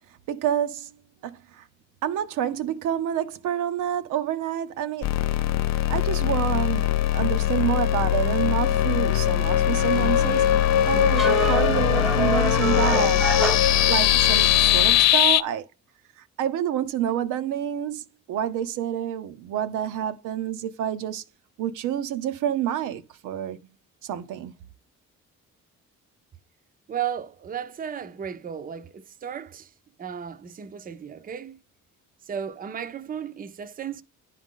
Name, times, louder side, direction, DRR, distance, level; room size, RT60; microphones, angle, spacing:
voice 1, 0.3-0.9 1.2-1.6 2.0-5.1 5.9-10.5 10.9-13.2 13.9-15.7 16.4-18.0 18.3-21.2 21.6-23.6 24.0-24.5, right 10 dB, 85° right, 0.7 m, -28 dB
sound 1, 5.0-15.4, left 12 dB, 60° left, 0.4 m, -21 dB
sound 2, 10.1-14.4, right 1 dB, ahead, 0.8 m, -27 dB
voice 2, 26.9-29.7 30.0-31.6 32.3-34.0, right 8 dB, 30° right, 0.5 m, -34 dB
10.0 x 3.8 x 3.6 m
cardioid pair, 90°, 30 cm